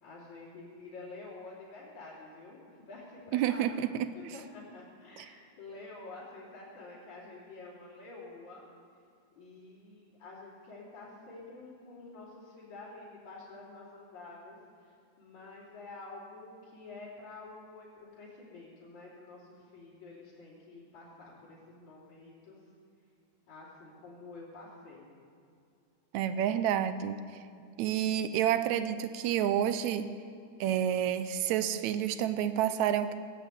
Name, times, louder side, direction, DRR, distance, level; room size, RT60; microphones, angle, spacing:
voice 1, 0.0-3.9 4.1-8.6 9.4-14.6 15.2-17.9 18.1-22.6 23.5-25.1, left 3 dB, 65° left, -10 dB, 4.5 m, -48 dB
voice 2, 3.3-3.9 5.2-5.3 26.1-27.2 27.8-30.1 30.6-33.2, right 10 dB, 80° right, 12 dB, 1.8 m, -29 dB
19.5 x 8.9 x 8.2 m, 2.3 s
omnidirectional pair, 3.6 m